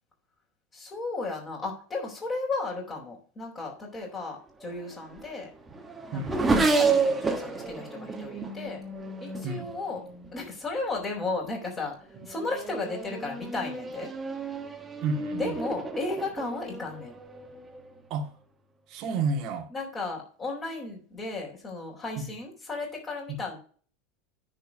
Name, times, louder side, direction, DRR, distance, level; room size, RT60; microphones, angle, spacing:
voice 1, 0.7-5.5 6.1-8.8 9.2-10.0 10.3-11.9 12.2-14.1 15.4-17.1 19.7-23.6, left 3 dB, 25° left, -3 dB, 4.1 m, -34 dB
Race car auto racing / Accelerating revving vroom, 4.6-10.5 11.3-11.7 12.1-18.0, right 3 dB, 20° right, 1.9 m, -31 dB
voice 2, 15.0-15.6 18.1-18.3 18.9-19.7 22.2-22.3 23.3-23.4, right 4 dB, 50° right, 4 dB, 2.1 m, -31 dB
10.5 x 4.4 x 6.7 m, 0.42 s
hypercardioid pair, 85°, 0 cm